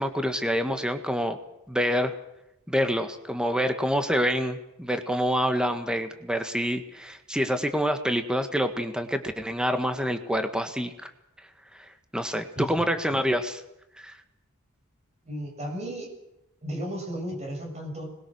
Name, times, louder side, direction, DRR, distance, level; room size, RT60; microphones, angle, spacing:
voice 1, 0.0-1.4 1.7-2.1 2.7-11.1 12.1-13.6 14.0-14.2, equal, 5° right, 7 dB, 1.6 m, -27 dB
voice 2, 15.2-16.1 16.6-18.0, equal, 30° right, 2 dB, 7.5 m, -34 dB
25.5 x 21.0 x 6.4 m, 0.88 s
head